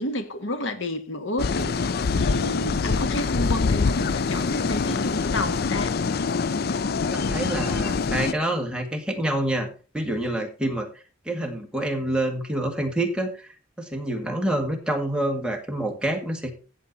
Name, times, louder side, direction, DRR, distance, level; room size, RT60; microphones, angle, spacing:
voice 1, 0.0-5.9, left 1 dB, 80° left, 1.6 m, -31 dB
sound 1, 1.4-8.3, left 4 dB, 55° left, 0.5 m, -25 dB
voice 2, 7.1-9.7 9.9-13.5 13.8-16.5, right 1 dB, 5° right, 1.9 m, -27 dB
16.0 x 6.7 x 4.1 m
head